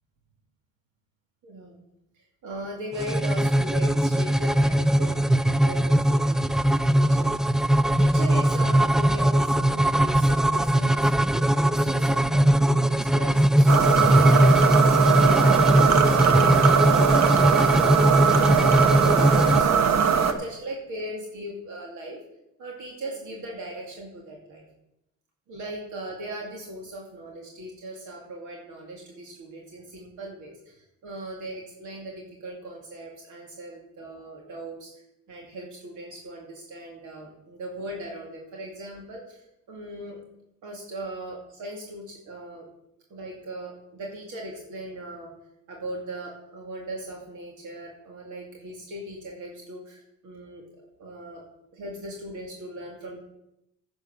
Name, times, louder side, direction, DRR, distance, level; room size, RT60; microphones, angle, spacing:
voice 1, 1.4-1.8 2.1-6.6 6.9-7.5 7.8-19.7 20.1-22.2 22.6-24.6 25.5-34.9 35.3-40.2 40.6-42.7 43.1-45.3 45.7-50.6 51.0-51.4 51.7-53.2, right 1 dB, 80° right, -1 dB, 2.4 m, -39 dB
sound 1, 2.9-19.6, right 1 dB, ahead, 0.3 m, -20 dB
sound 2, 13.7-20.3, right 7 dB, 60° right, 1.2 m, -20 dB
10.0 x 7.9 x 6.1 m, 0.83 s
cardioid pair, 90°, 30 cm